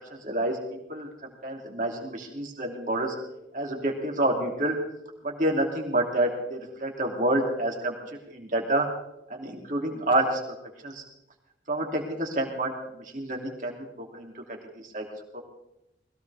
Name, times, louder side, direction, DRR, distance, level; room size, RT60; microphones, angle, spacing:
voice 1, 0.1-0.6 0.9-3.1 3.5-4.8 5.2-7.9 8.3-8.9 9.3-10.4 10.8-11.0 11.7-15.0 15.3-15.4, right 1 dB, 45° right, 1 dB, 3.0 m, -28 dB
21.0 x 16.5 x 3.6 m, 0.85 s
head